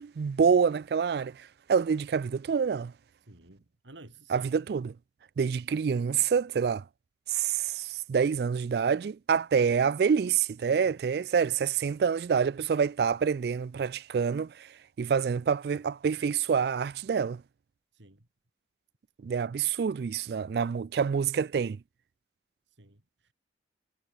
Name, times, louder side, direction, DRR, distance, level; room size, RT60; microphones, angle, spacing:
voice 1, 0.0-2.9 4.3-4.9 5.4-6.8 7.3-14.7 15.0-17.4 19.2-21.8, right 6 dB, 60° right, 0.3 m, -27 dB
voice 2, 3.3-4.5 10.9-11.0 17.9-18.3 22.7-23.3, right 2 dB, 85° right, 2.8 m, -53 dB
head